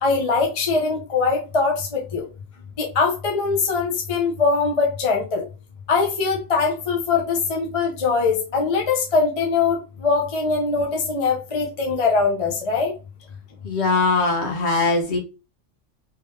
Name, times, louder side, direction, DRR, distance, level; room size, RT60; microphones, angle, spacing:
voice 1, 0.0-2.3 2.8-5.4 5.9-12.9, left 4 dB, 30° left, 1 dB, 0.7 m, -22 dB
voice 2, 13.6-15.2, left 3 dB, 55° left, 2 dB, 1.3 m, -21 dB
3.7 x 3.0 x 3.3 m, 0.30 s
omnidirectional pair, 1.4 m